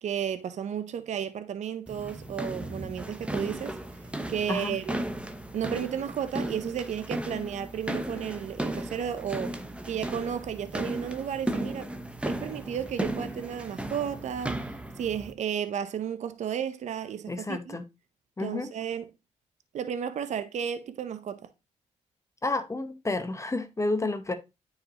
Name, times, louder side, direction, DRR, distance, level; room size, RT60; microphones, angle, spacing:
voice 1, 0.0-5.0 5.5-9.6 9.8-12.0 12.2-14.7 15.0-17.8 18.4-19.1 19.7-21.5, right 8 dB, 65° right, 0.6 m, -33 dB
sound 1, 1.9-15.3, right 1 dB, 10° right, 0.9 m, -35 dB
voice 2, 17.3-17.8 18.4-18.7 22.4-24.3, left 2 dB, 25° left, 0.9 m, -30 dB
9.4 x 4.9 x 2.9 m
cardioid pair, 75°, 13 cm